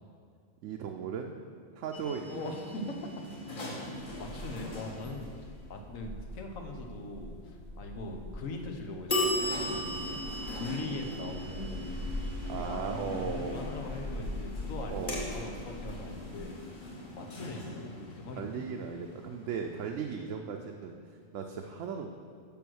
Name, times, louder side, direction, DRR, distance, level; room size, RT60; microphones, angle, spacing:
voice 1, 0.6-1.3 1.8-2.4 5.7-5.8 12.5-13.7 14.9-15.2 17.0-17.2 18.4-22.1, right 6 dB, 75° right, 3 dB, 0.9 m, -37 dB
sound 1, 1.9-5.7 9.1-19.8, left 1 dB, 40° left, 1.3 m, -38 dB
voice 2, 2.3-3.0 4.2-10.2 10.5-11.9 12.4-16.6 17.1-18.6, left 2 dB, 85° left, 3 dB, 1.3 m, -41 dB
sound 2, 3.9-16.4, left 1 dB, 60° left, 1.0 m, -42 dB
7.0 x 5.9 x 6.2 m, 2.2 s
omnidirectional pair, 1.3 m